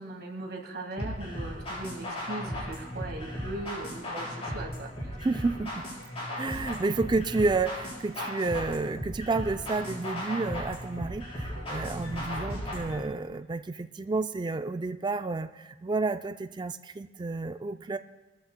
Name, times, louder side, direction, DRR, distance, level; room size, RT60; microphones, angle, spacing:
voice 1, 0.0-5.2, right 2 dB, 55° right, 1 dB, 1.8 m, -39 dB
sound 1, 1.0-13.0, equal, 30° left, 4.7 m, -36 dB
voice 2, 5.2-5.8 6.4-18.0, right 3 dB, 25° right, 9 dB, 0.3 m, -30 dB
21.0 x 13.5 x 2.2 m, 1.1 s
head